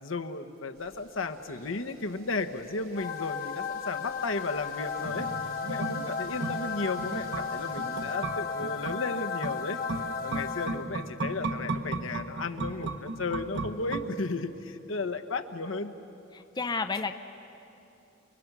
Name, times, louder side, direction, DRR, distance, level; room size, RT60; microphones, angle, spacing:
voice 1, 0.0-5.3 5.6-9.8 10.2-15.9, left 3 dB, 75° left, 6 dB, 1.1 m, -34 dB
sound 1, 0.7-8.2, right 3 dB, 90° right, 3.8 m, -58 dB
sound 2, 2.9-11.2, left 6 dB, 45° left, 0.8 m, -35 dB
sound 3, 5.0-14.6 14.9-15.0, right 3 dB, 55° right, 1.0 m, -36 dB
voice 2, 16.3-17.2, left 4 dB, 20° left, 8 dB, 0.5 m, -31 dB
29.0 x 21.5 x 6.1 m, 2.9 s
head